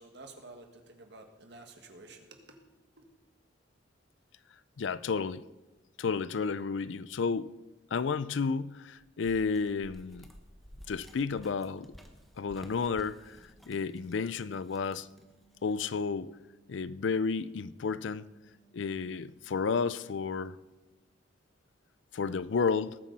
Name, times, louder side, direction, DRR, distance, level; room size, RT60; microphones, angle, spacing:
voice 1, 0.0-2.6 3.0-3.1, right 2 dB, 60° right, 1.8 m, -51 dB
voice 2, 4.8-5.4 6.0-7.5 7.9-10.3 10.9-11.9 12.4-13.4 13.7-15.1 15.6-16.4 16.7-18.3 18.7-20.6 22.1-23.0, left 5 dB, 70° left, 0.4 m, -31 dB
sound 1, 9.2-16.0, equal, ahead, 1.1 m, -54 dB
sound 2, 11.3-21.4, right 4 dB, 35° left, 4.4 m, -68 dB
20.0 x 8.6 x 4.1 m
head